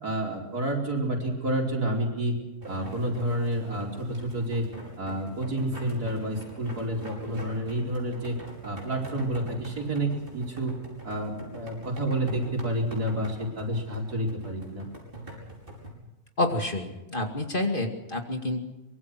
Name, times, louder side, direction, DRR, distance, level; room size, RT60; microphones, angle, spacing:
voice 1, 0.0-2.4 2.7-4.6 5.0-8.4 8.6-10.8 11.0-14.9, right 1 dB, 85° right, -1 dB, 5.2 m, -29 dB
sound 1, 2.6-15.9, right 1 dB, 35° right, 5.9 m, -43 dB
voice 2, 16.4-18.6, left 2 dB, 35° left, 4 dB, 2.5 m, -28 dB
24.5 x 22.5 x 6.1 m, 1.0 s
omnidirectional pair, 1.6 m